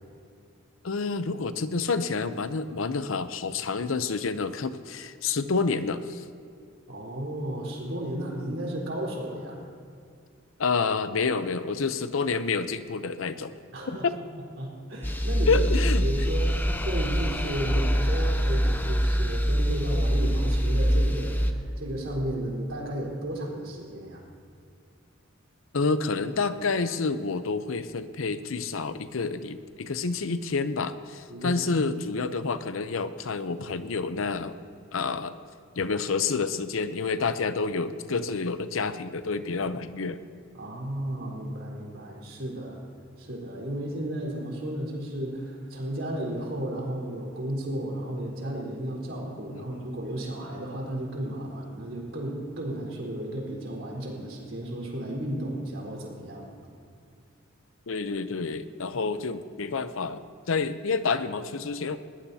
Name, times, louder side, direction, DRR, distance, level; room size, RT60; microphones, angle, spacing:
voice 1, 0.8-6.2 10.6-13.5 13.9-14.0 15.5-16.1 25.7-34.6 34.9-35.3 35.8-40.2 49.5-49.7 57.9-62.0, left 4 dB, 80° left, 11 dB, 0.7 m, -28 dB
voice 2, 6.9-9.6 13.7-24.2 31.3-31.6 40.5-42.8 43.2-56.5, right 1 dB, 65° right, -3 dB, 4.2 m, -34 dB
sound 1, 15.0-21.5, equal, 10° left, 0.6 m, -24 dB
20.5 x 18.5 x 2.8 m, 2.3 s
head